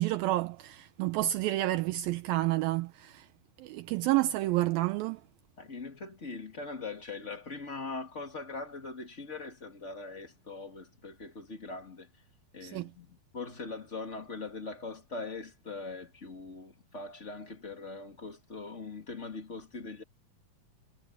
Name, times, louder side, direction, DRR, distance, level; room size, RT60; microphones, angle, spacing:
voice 1, 0.0-3.3 3.6-5.2 12.6-12.9, right 16 dB, 80° right, 2.3 m, -29 dB
voice 2, 5.6-12.2 12.5-20.0, left 3 dB, 25° left, 1.6 m, -41 dB
omnidirectional pair, 4.5 m